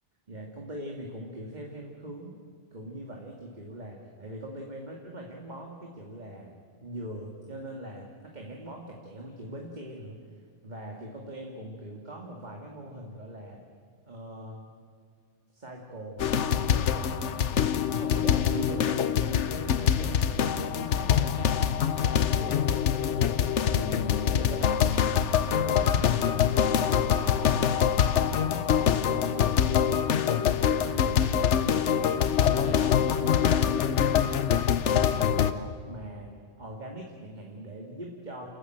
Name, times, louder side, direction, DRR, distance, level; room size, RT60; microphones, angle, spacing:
voice 1, 0.3-13.6 14.1-14.7 15.5-17.5 17.9-21.7 22.0-27.8 28.1-32.2 32.5-36.3 36.6-38.5, right 1 dB, 40° right, 0 dB, 2.2 m, -41 dB
sound 1, 16.2-35.5, left 8 dB, 85° left, 1.2 m, -24 dB
29.0 x 13.5 x 9.1 m, 2.1 s
omnidirectional pair, 1.2 m